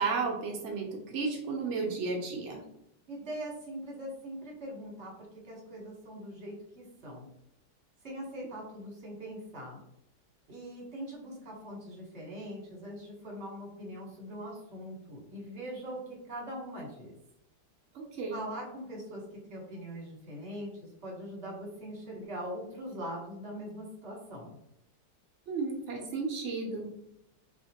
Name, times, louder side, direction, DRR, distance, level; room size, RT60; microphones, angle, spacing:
voice 1, 0.0-2.6 17.9-18.4 25.5-26.9, right 4 dB, 80° right, 0 dB, 0.6 m, -33 dB
voice 2, 3.1-5.1 5.4-7.3 8.0-9.8 10.5-17.1 18.3-19.2 19.5-24.6, equal, 45° right, -3 dB, 1.2 m, -42 dB
2.8 x 2.8 x 2.8 m, 0.78 s
omnidirectional pair, 1.9 m